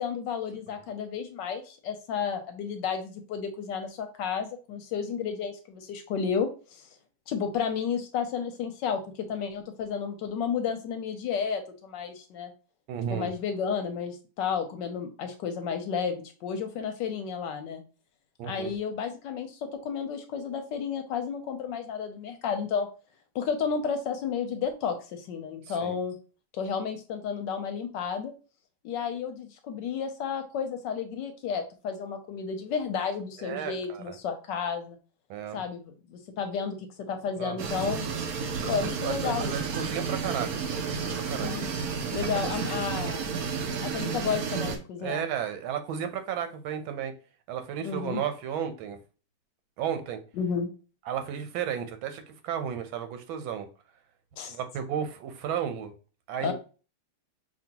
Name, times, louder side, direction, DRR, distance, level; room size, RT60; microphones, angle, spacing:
voice 1, 0.0-6.9 7.3-12.5 13.1-17.8 18.4-22.9 23.3-26.1 26.5-28.3 28.8-35.0 35.5-38.0 38.7-39.5 41.4-41.7 42.1-43.3 43.8-45.2 47.8-48.2 50.4-50.7 54.4-54.6 56.4-56.5, left 6 dB, 75° left, 7 dB, 1.1 m, -32 dB
voice 2, 12.9-13.3 18.4-18.7 25.7-26.0 33.4-34.2 35.3-35.6 37.4-37.7 38.8-41.5 42.3-42.5 45.0-47.1 47.5-49.0 49.8-50.2 51.1-53.7 54.5-55.9 56.3-56.5, right 8 dB, 90° right, 8 dB, 1.5 m, -33 dB
sound 1, 37.6-44.8, right 5 dB, 65° right, 0.9 m, -31 dB
5.2 x 2.7 x 2.8 m, 0.36 s
omnidirectional pair, 2.1 m